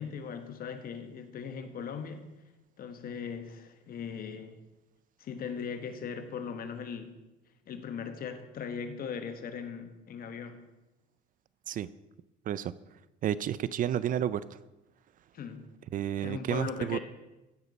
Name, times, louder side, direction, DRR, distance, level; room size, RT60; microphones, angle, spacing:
voice 1, 0.0-2.2 2.8-4.6 5.2-7.2 7.7-10.7 15.3-15.7 16.2-17.0, left 6 dB, 55° left, 8 dB, 1.3 m, -39 dB
voice 2, 13.2-14.4 15.9-17.0, right 10 dB, 50° right, 17 dB, 0.4 m, -31 dB
16.0 x 6.4 x 4.1 m, 1.0 s
cardioid pair, 100°, 18 cm